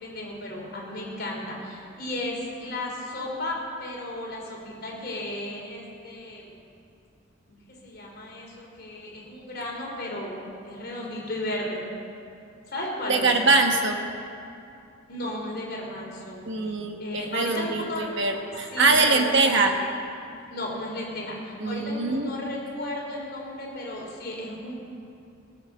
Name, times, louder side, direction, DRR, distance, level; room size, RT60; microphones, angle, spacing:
voice 1, 0.0-6.6 7.5-10.4 10.6-11.8 12.7-13.3 15.1-16.5 17.0-18.1 18.7-19.2 20.5-24.7, left 1 dB, 50° left, -2 dB, 3.4 m, -34 dB
voice 2, 13.1-14.0 16.4-19.8 21.6-22.3, right 3 dB, 60° right, 4 dB, 1.3 m, -23 dB
18.0 x 8.2 x 6.7 m, 2.6 s
head